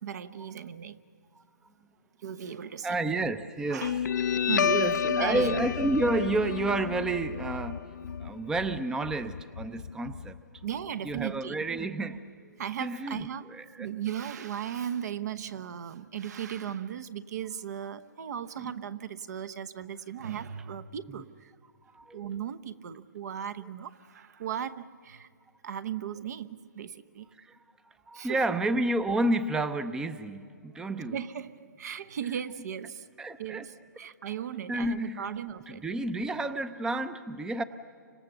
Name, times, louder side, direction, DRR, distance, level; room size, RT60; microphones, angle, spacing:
voice 1, 0.0-1.0 2.2-2.9 3.7-4.0 4.3-4.8 5.1-5.6 10.6-11.6 12.6-13.5 13.8-21.5 22.1-25.3 25.6-27.3 28.1-28.6 31.1-33.1 33.4-35.8, right 9 dB, 60° right, 13 dB, 1.0 m, -37 dB
voice 2, 2.8-4.1 4.6-7.9 8.2-10.4 11.0-12.2 12.8-13.9 18.6-18.7 21.9-22.3 27.4-27.6 28.1-31.2 33.2-33.7 34.7-35.3 35.7-37.6, right 2 dB, 5° right, 13 dB, 0.6 m, -30 dB
Guitar, 3.8-10.8, left 7 dB, 70° left, 0.6 m, -30 dB
29.5 x 25.5 x 7.0 m, 2.2 s
hypercardioid pair, 140°, 10 cm